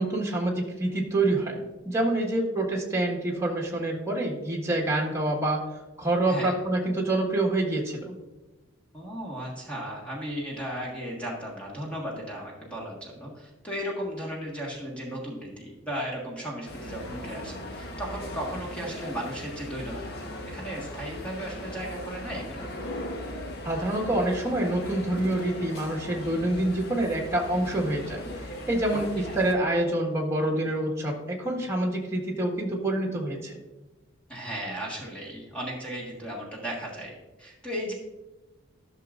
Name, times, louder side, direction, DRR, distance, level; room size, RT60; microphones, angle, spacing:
voice 1, 0.0-5.6 6.0-8.1 23.6-28.2 28.5-33.6, right 1 dB, 15° right, -1 dB, 1.5 m, -27 dB
voice 2, 8.9-22.7 28.9-29.0 29.3-29.4 34.3-37.9, equal, 5° left, -4 dB, 1.5 m, -36 dB
sound 1, 16.6-29.5, left 1 dB, 50° left, 1.1 m, -38 dB
12.5 x 6.4 x 2.5 m, 1.1 s
head